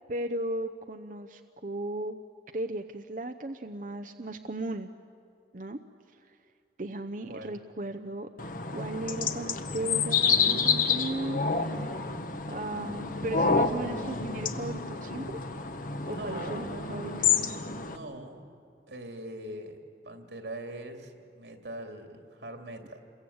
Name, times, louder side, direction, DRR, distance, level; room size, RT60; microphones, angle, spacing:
voice 1, 0.1-2.2 2.5-4.9 5.5-5.8 6.1-6.4 6.8-8.3 8.7-12.1 12.5-15.4 16.1-17.3, right 1 dB, 45° right, 6 dB, 0.8 m, -36 dB
voice 2, 7.3-7.6 16.0-16.7 17.8-18.5 18.9-19.8 20.0-23.0, right 1 dB, 85° right, 4 dB, 3.0 m, -42 dB
sound 1, 8.4-18.0, left 5 dB, 50° left, 1.2 m, -29 dB
28.5 x 22.5 x 8.7 m, 2.5 s
head